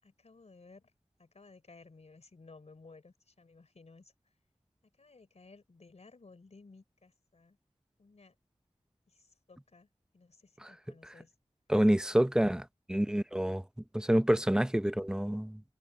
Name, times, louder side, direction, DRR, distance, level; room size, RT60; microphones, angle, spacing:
voice 1, 0.0-0.9 1.2-4.1 5.0-7.6 8.0-8.4 9.1-9.9 10.1-11.3 12.9-13.0, left 3 dB, 90° left, 3.6 m, -57 dB
voice 2, 11.7-13.6 13.9-15.6, right 1 dB, 5° right, 0.6 m, -28 dB
wide cardioid pair, 65°, 11 cm